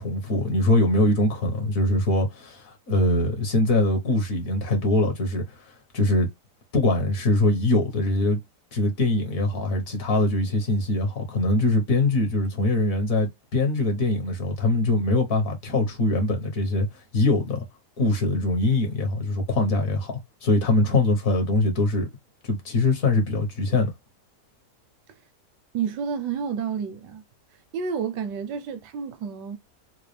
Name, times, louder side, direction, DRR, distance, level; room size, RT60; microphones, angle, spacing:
voice 1, 0.0-5.7 5.9-6.3 6.7-8.4 8.7-16.9 17.1-17.7 18.0-20.1 20.4-22.1 22.4-23.9, left 2 dB, 55° left, 1.5 m, -23 dB
voice 2, 25.7-27.2 27.7-29.6, right 7 dB, 80° right, 1.3 m, -30 dB
4.0 x 2.4 x 3.2 m
omnidirectional pair, 1.8 m